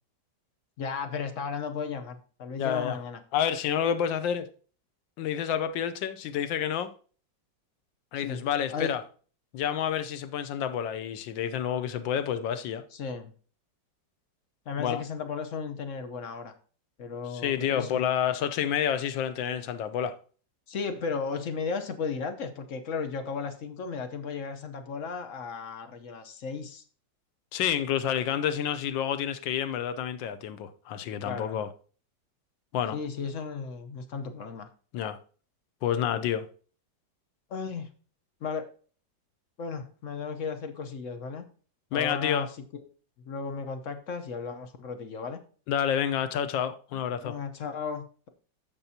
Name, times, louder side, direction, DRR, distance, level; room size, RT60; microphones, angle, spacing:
voice 1, 0.8-3.2 8.2-8.4 8.7-8.9 12.9-13.3 14.7-16.5 17.0-18.0 20.7-26.8 31.2-31.6 32.9-34.7 37.5-37.9 38.4-38.7 39.6-41.4 41.9-42.8 43.2-45.4 46.9-48.3, left 5 dB, 50° left, 1.1 m, -35 dB
voice 2, 2.6-3.0 3.3-4.5 5.2-6.9 8.1-9.0 9.5-12.8 14.8-15.0 17.3-20.2 27.5-31.7 32.7-33.0 34.9-35.2 35.8-36.4 41.9-42.5 45.7-47.4, left 9 dB, 85° left, 1.4 m, -29 dB
14.5 x 5.3 x 2.8 m
omnidirectional pair, 2.0 m